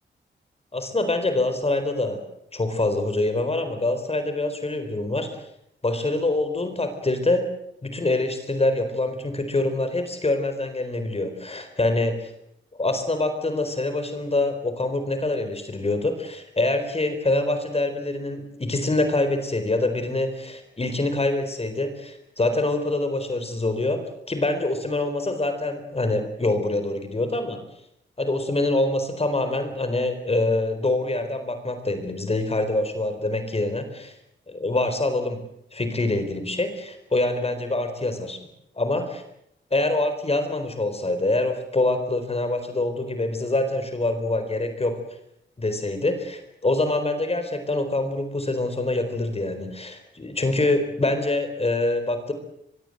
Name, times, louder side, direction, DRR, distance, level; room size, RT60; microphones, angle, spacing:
voice 1, 0.7-2.2 2.5-5.3 5.8-7.5 7.8-12.3 12.8-24.0 24.3-27.6 28.2-34.1 34.5-35.4 35.7-38.5 38.8-39.2 39.7-45.0 45.6-52.3, left 2 dB, 30° left, 8 dB, 4.2 m, -25 dB
24.0 x 22.0 x 7.9 m, 0.76 s
wide cardioid pair, 90°, 19 cm